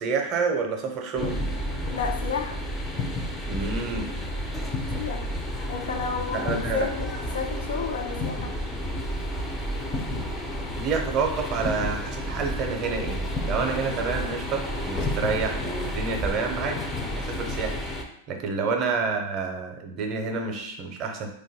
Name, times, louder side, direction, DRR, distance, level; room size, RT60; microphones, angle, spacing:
voice 1, 0.0-1.4 3.5-4.1 6.3-6.9 10.8-16.8 17.2-17.8 18.3-21.3, right 5 dB, 35° right, 4 dB, 0.5 m, -28 dB
sound 1, 1.2-18.0, left 1 dB, 10° left, 0.4 m, -31 dB
voice 2, 1.9-2.7 5.0-5.3 5.7-8.5 18.6-18.8, left 6 dB, 80° left, 4 dB, 0.5 m, -32 dB
2.6 x 2.2 x 4.0 m, 0.75 s
hypercardioid pair, 135°, 0 cm